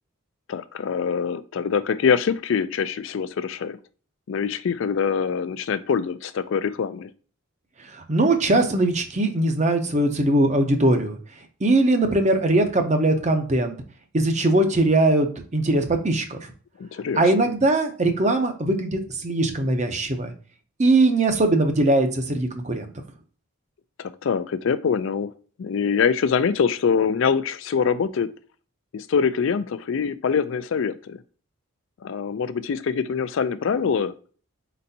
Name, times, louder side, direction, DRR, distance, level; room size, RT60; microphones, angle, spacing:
voice 1, 0.5-3.8 4.3-7.1 16.8-17.5 24.0-25.3 25.6-28.3 28.9-31.2 32.0-34.1, left 6 dB, 60° left, 14 dB, 0.3 m, -24 dB
voice 2, 7.9-11.2 11.6-13.7 14.1-15.3 15.5-16.4 17.2-20.3 20.8-22.9, right 2 dB, 30° right, 6 dB, 0.6 m, -20 dB
4.4 x 4.0 x 2.7 m, 0.41 s
head